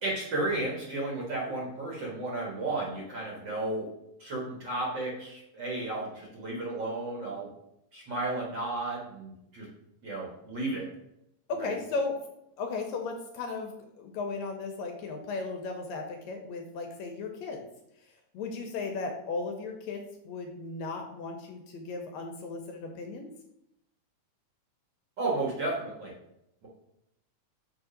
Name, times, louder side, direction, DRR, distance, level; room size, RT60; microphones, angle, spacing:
voice 1, 0.0-3.9 4.2-7.5 7.9-9.7 10.0-10.9 11.6-11.8 25.2-26.1 26.6-26.7, right 2 dB, 45° right, -3 dB, 1.7 m, -33 dB
voice 2, 11.5-12.2 12.6-17.6 18.3-23.3, left 3 dB, 75° left, 3 dB, 1.8 m, -36 dB
6.4 x 3.6 x 4.9 m, 0.81 s
omnidirectional pair, 3.4 m